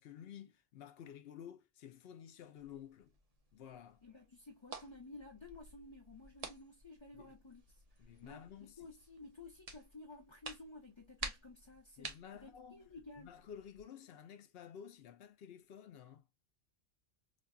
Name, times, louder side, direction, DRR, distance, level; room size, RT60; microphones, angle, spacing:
voice 1, 0.0-3.1 3.5-4.0 7.1-7.3 8.0-8.9 12.0-12.9 13.2-16.3, left 9 dB, 65° left, 0.8 m, -53 dB
sound 1, 2.6-13.8, right 3 dB, 40° right, 0.7 m, -52 dB
voice 2, 4.0-7.6 8.2-13.4, left 2 dB, 25° left, 0.9 m, -54 dB
5.1 x 2.4 x 2.3 m
omnidirectional pair, 1.1 m